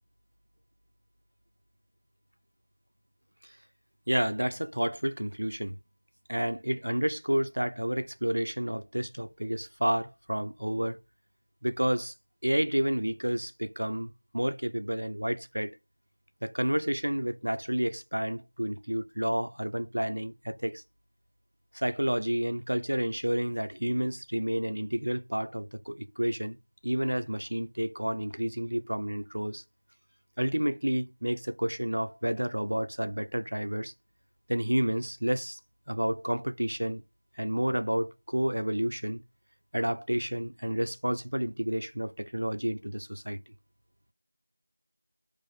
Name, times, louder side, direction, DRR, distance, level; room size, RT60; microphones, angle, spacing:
voice 1, 4.1-5.8 6.3-11.0 11.6-12.1 12.4-15.8 16.4-20.8 21.7-26.6 26.8-29.6 30.4-33.9 34.5-35.6 35.9-37.0 37.4-39.2 39.7-43.4, equal, 70° right, 0.4 m, -30 dB
4.1 x 2.5 x 3.9 m
figure-of-eight pair, 175°, 0 cm